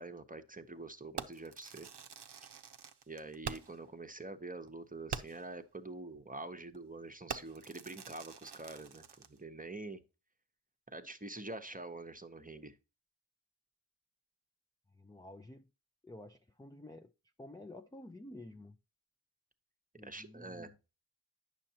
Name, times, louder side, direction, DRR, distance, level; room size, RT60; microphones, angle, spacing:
voice 1, 0.0-1.9 3.1-10.0 10.9-12.8 20.0-20.7, right 2 dB, 15° right, 0.9 m, -46 dB
Fireworks, 1.2-3.9 4.2-4.3 4.7-4.8 5.1-5.6 6.2-6.4 6.7-6.9 7.3-9.4, right 6 dB, 55° right, 0.7 m, -45 dB
voice 2, 14.9-15.7 16.0-17.1 17.4-18.8 20.0-20.8, left 1 dB, 10° left, 0.5 m, -51 dB
9.0 x 6.4 x 2.8 m
cardioid pair, 40°, 48 cm